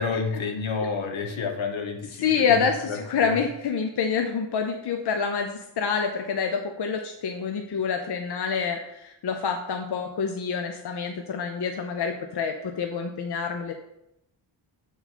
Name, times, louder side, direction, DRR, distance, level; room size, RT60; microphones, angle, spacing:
voice 1, 0.0-3.4, left 4 dB, 80° left, 4 dB, 1.3 m, -30 dB
voice 2, 2.2-13.7, left 6 dB, 55° left, 5 dB, 0.7 m, -27 dB
7.3 x 7.1 x 4.2 m, 0.84 s
wide cardioid pair, 175°, 46 cm